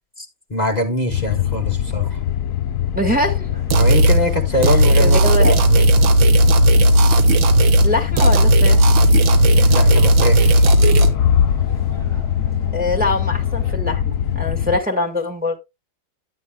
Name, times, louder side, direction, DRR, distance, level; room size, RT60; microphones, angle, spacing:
voice 1, 0.5-2.2 3.7-6.2 9.5-10.6, left 1 dB, 35° left, 0.7 m, -23 dB
sound 1, 1.1-14.8, left 9 dB, 70° left, 0.8 m, -22 dB
voice 2, 2.9-3.6 4.7-5.6 7.8-8.8 12.7-15.6, left 2 dB, 5° right, 1.4 m, -23 dB
sound 2, 3.2-13.7, left 3 dB, 35° right, 5.5 m, -39 dB
sound 3, 3.7-4.2 4.6-7.9 8.2-11.1, right 1 dB, 75° right, 1.7 m, -13 dB
9.6 x 9.6 x 2.2 m
omnidirectional pair, 2.1 m